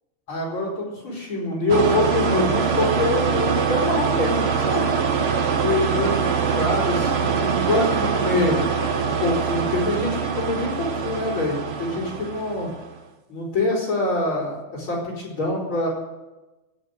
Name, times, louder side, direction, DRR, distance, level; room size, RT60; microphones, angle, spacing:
voice 1, 0.3-4.9 5.3-8.7 9.0-12.7 13.3-15.9, left 2 dB, 80° left, -3 dB, 5.1 m, -25 dB
sound 1, 1.7-12.9, right 6 dB, 45° right, 0.9 m, -23 dB
18.5 x 9.5 x 7.9 m, 1.1 s
omnidirectional pair, 2.2 m